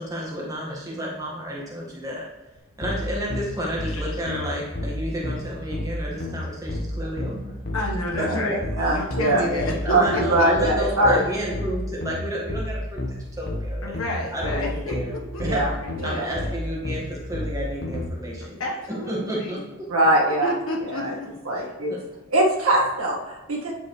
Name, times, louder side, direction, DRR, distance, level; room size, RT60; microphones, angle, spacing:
voice 1, 0.0-2.2 2.8-7.5 8.2-8.6 8.9-9.0 9.2-14.0 14.3-15.1 15.4-15.6 16.0-18.6 19.1-19.9 21.9-22.0, equal, 15° right, -3 dB, 1.6 m, -31 dB
sound 1, 2.8-18.1, left 1 dB, 45° left, 1.2 m, -30 dB
voice 2, 3.8-4.1 7.7-8.6 8.9-10.8 11.8-11.9 13.8-16.6 18.6-19.6 20.4-21.3 21.6-21.7, left 1 dB, 70° left, 0 dB, 1.3 m, -31 dB
voice 3, 8.8-9.4 9.9-11.2 15.4-15.7 16.0-16.2 19.9-20.5 20.8-21.1 21.4-21.9 22.3-23.7, right 1 dB, 75° right, -3 dB, 1.7 m, -22 dB
9.6 x 5.2 x 3.2 m, 1.1 s
head